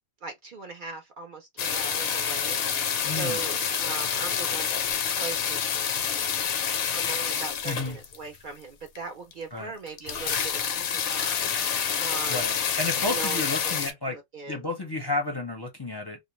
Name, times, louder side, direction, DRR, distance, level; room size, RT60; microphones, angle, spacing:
voice 1, 0.2-4.8 5.1-5.7 6.9-12.5 13.1-13.8 14.1-14.6, right 4 dB, 60° right, 0.6 m, -39 dB
sound 1, 1.6-8.4 8.9-9.0 9.3-9.4 9.6-9.7 9.9-13.9, left 7 dB, 65° left, 0.7 m, -28 dB
voice 2, 3.0-3.4 7.6-8.0 9.5-9.7 11.9-14.2 14.5-16.2, left 2 dB, 30° left, 0.6 m, -32 dB
2.4 x 2.1 x 2.9 m
omnidirectional pair, 1.2 m